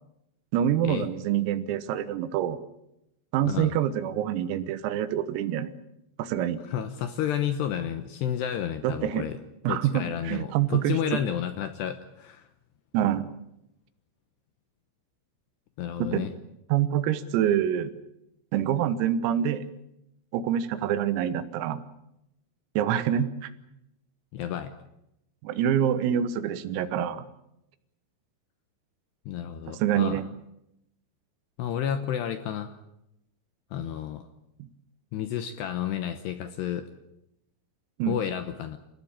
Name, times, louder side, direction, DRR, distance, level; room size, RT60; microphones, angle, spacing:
voice 1, 0.5-2.6 3.3-5.7 6.2-6.6 8.8-9.3 9.7-11.0 12.9-13.3 16.0-16.3 16.7-17.9 18.5-19.7 20.3-21.8 22.8-23.5 25.4-27.3 29.7-30.3 34.6-34.7 38.0-38.2, right 10 dB, 90° right, 12 dB, 4.0 m, -26 dB
voice 2, 6.7-9.4 9.7-12.4 15.8-16.3 24.3-24.7 29.3-30.2 31.6-32.8 33.7-34.3 35.1-36.9 38.1-38.8, left 10 dB, 75° left, 9 dB, 2.6 m, -31 dB
29.0 x 15.5 x 8.7 m, 0.84 s
omnidirectional pair, 5.9 m